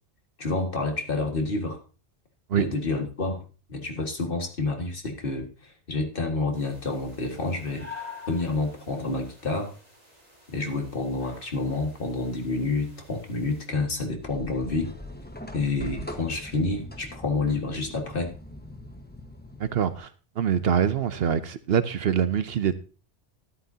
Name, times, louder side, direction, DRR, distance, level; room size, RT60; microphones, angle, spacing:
voice 1, 0.4-1.8 2.5-3.4 3.7-7.9 8.3-9.7 10.5-14.9 15.5-18.3, left 3 dB, 50° left, 1.9 m, -29 dB
sound 1, 6.5-13.7, left 5 dB, 35° right, 3.4 m, -48 dB
sound 2, 14.2-20.0, left 1 dB, 10° left, 1.1 m, -41 dB
voice 2, 19.6-20.1 20.4-22.7, right 8 dB, 65° right, 0.8 m, -24 dB
13.0 x 11.5 x 2.8 m
omnidirectional pair, 1.2 m